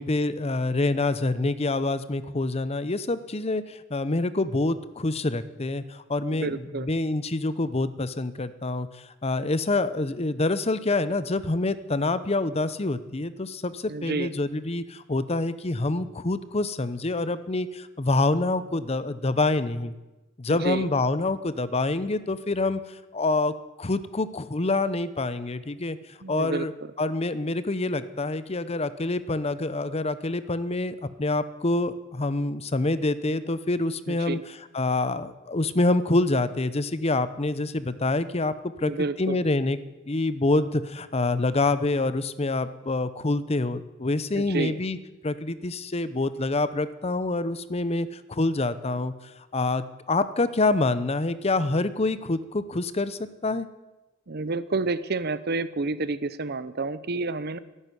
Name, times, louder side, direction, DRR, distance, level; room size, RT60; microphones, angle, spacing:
voice 1, 0.0-19.9 20.4-22.8 23.1-26.0 26.3-26.7 27.0-34.4 34.7-39.8 40.1-45.0 45.2-49.1 49.5-53.7, left 2 dB, 30° left, 14 dB, 0.8 m, -26 dB
voice 2, 6.2-6.9 13.9-14.3 20.5-20.9 26.2-26.7 34.1-34.4 38.8-39.4 44.4-44.8 54.3-57.6, right 3 dB, 50° right, 15 dB, 0.8 m, -29 dB
13.0 x 11.5 x 9.4 m, 1.1 s
head